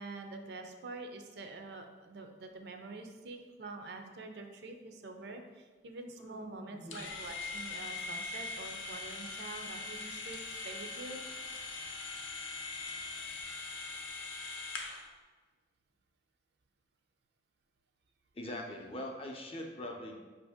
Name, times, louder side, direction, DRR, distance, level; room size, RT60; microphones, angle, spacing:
voice 1, 0.0-11.2, right 3 dB, 60° right, 5 dB, 0.4 m, -46 dB
voice 2, 6.2-7.0 18.4-20.2, left 1 dB, 30° left, 2 dB, 0.4 m, -42 dB
sound 1, 6.9-15.1, left 3 dB, 80° left, 0.6 m, -41 dB
5.4 x 2.6 x 3.4 m, 1.3 s
head